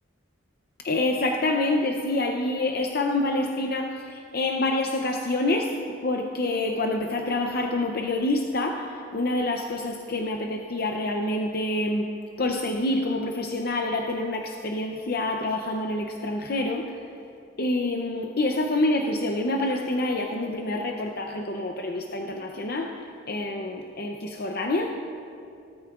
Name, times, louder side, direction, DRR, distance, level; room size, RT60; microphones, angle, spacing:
voice 1, 0.8-5.8 6.0-12.1 12.4-16.9 17.6-23.0 23.3-24.9, left 2 dB, 50° left, 2 dB, 0.6 m, -27 dB
18.0 x 13.0 x 2.5 m, 2.5 s
head